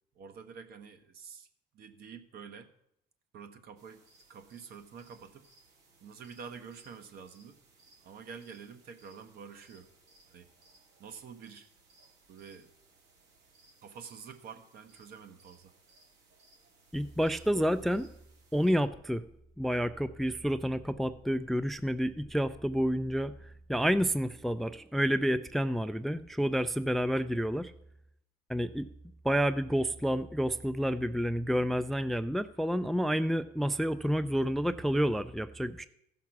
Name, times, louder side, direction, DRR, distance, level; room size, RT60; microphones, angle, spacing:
voice 1, 0.1-1.5 1.7-2.7 3.3-4.0 4.3-5.4 6.0-7.6 8.0-9.9 10.3-10.5 11.0-11.7 12.3-12.7 13.8-15.7, right 6 dB, 65° right, 8 dB, 1.1 m, -48 dB
sound 1, 3.8-18.7, right 3 dB, 85° right, 2.9 m, -64 dB
voice 2, 16.9-18.1 18.5-19.2 19.6-23.3 23.7-27.7 28.5-28.9 29.2-35.9, equal, ahead, 12 dB, 0.3 m, -29 dB
14.5 x 5.9 x 6.0 m, 0.76 s
cardioid pair, 110°, 17 cm